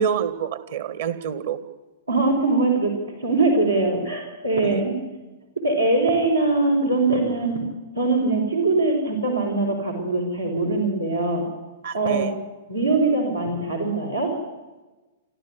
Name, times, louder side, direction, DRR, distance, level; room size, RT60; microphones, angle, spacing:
voice 1, 0.0-1.6 4.6-4.8 11.8-12.3, right 7 dB, 55° right, 13 dB, 2.1 m, -27 dB
voice 2, 2.1-5.0 5.6-7.6 7.9-11.4 11.9-12.3 12.7-14.3, right 3 dB, 90° right, 0 dB, 5.7 m, -22 dB
27.5 x 14.0 x 9.9 m, 1.2 s
figure-of-eight pair, 105°, 0 cm